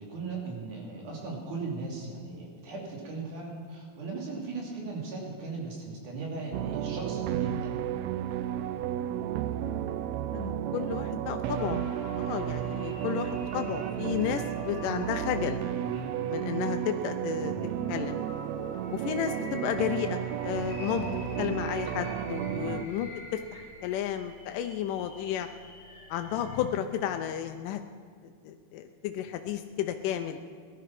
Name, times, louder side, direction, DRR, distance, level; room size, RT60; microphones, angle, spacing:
voice 1, 0.0-7.7 15.8-16.2 17.3-17.8 20.9-21.1 22.4-22.7, right 4 dB, 70° right, -2 dB, 4.4 m, -38 dB
sound 1, 6.5-22.9, right 11 dB, 85° right, 1.5 m, -33 dB
voice 2, 10.3-11.8 12.2-15.6 16.3-17.5 17.9-18.2 18.9-21.1 21.4-25.5 26.1-27.8 28.2-30.4, left 10 dB, 90° left, 7 dB, 2.3 m, -32 dB
sound 2, 11.6-26.6, left 3 dB, 30° left, 3.3 m, -46 dB
18.0 x 12.0 x 5.9 m, 2.1 s
omnidirectional pair, 3.7 m